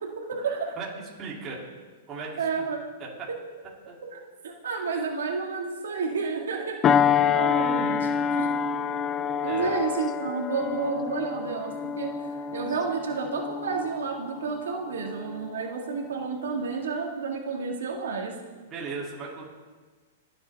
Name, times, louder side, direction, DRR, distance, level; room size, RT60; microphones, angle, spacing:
voice 1, 0.0-0.8 2.4-2.8 3.3-3.4 4.1-4.2 4.4-6.8 7.3-8.1 8.4-8.5 9.4-18.3, right 5 dB, 90° right, 0 dB, 1.9 m, -30 dB
voice 2, 1.2-1.6 2.1-2.5 3.0-3.3 3.9-4.0 9.4-9.8 18.7-19.5, right 4 dB, 25° right, -4 dB, 2.8 m, -36 dB
sound 1, 6.8-15.7 16.2-16.4, left 7 dB, 20° left, 0.4 m, -27 dB
20.0 x 7.9 x 3.5 m, 1.4 s
hypercardioid pair, 150°, 0 cm